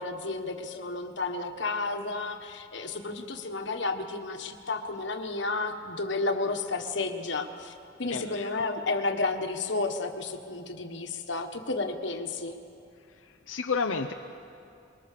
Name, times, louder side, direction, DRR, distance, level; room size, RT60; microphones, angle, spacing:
voice 1, 0.0-7.7 8.0-12.6, left 3 dB, 65° left, 5 dB, 1.5 m, -32 dB
voice 2, 8.1-8.6 13.2-14.1, left 5 dB, 90° left, 4 dB, 0.7 m, -31 dB
23.5 x 21.5 x 6.8 m, 2.6 s
head